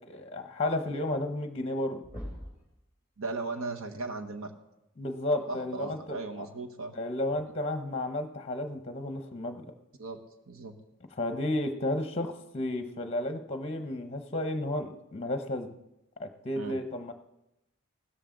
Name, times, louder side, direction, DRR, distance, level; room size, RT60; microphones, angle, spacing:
voice 1, 0.1-2.0 5.0-6.5 6.9-9.7 11.2-15.7 16.2-17.1, left 1 dB, 30° left, 7 dB, 0.8 m, -32 dB
sound 1, 2.0-2.7 4.4-4.5 6.3-6.5 7.3-7.4, equal, 10° right, 3.1 m, -42 dB
voice 2, 3.2-4.5 5.5-7.0 7.5-7.6 10.0-10.7 16.5-16.8, right 3 dB, 80° right, 5 dB, 1.2 m, -37 dB
16.0 x 13.0 x 3.8 m, 0.92 s
head